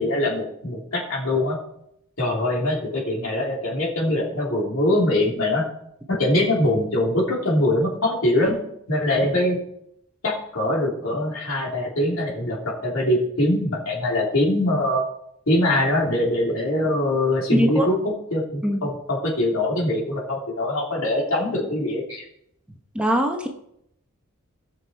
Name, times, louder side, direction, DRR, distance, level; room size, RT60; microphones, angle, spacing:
voice 1, 0.0-1.6 2.2-5.6 6.1-8.6 8.9-9.6 10.2-15.0 15.5-18.0 18.3-22.2, left 1 dB, 65° left, -2 dB, 3.2 m, -23 dB
voice 2, 17.5-17.9 18.6-18.9 22.9-23.5, equal, 5° right, 2 dB, 0.9 m, -21 dB
17.0 x 6.2 x 4.6 m, 0.75 s
head